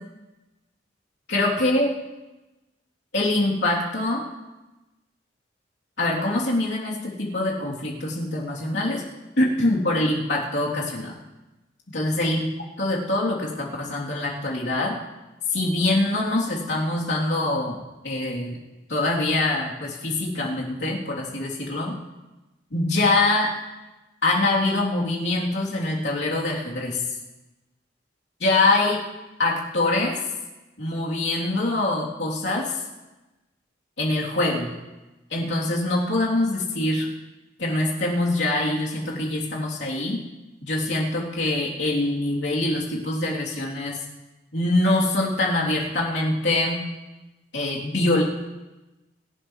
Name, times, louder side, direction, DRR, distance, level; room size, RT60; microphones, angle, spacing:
voice 1, 1.3-2.0 3.1-4.2 6.0-9.0 9.4-11.2 11.9-12.5 12.8-15.0 15.5-18.6 18.9-22.0 22.7-23.5 24.2-27.0 28.4-29.0 29.4-30.2 30.8-32.8 34.0-34.7 35.3-37.1 37.6-40.2 40.6-44.0 44.5-46.8 47.5-48.2, left 2 dB, 70° left, -4 dB, 3.4 m, -24 dB
24.5 x 12.0 x 3.3 m, 1.1 s
head